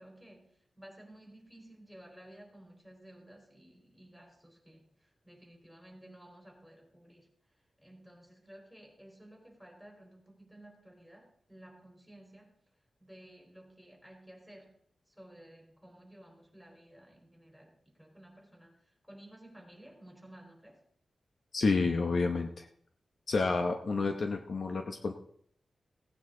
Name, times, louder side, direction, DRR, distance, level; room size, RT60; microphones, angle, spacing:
voice 1, 0.0-7.3 7.8-12.5 13.0-14.8 15.1-18.8 19.1-20.8, right 1 dB, 5° left, 1 dB, 4.1 m, -55 dB
voice 2, 21.5-22.7 23.3-25.1, left 3 dB, 60° left, 5 dB, 0.9 m, -29 dB
17.0 x 9.2 x 3.9 m, 0.63 s
wide cardioid pair, 110°, 0 cm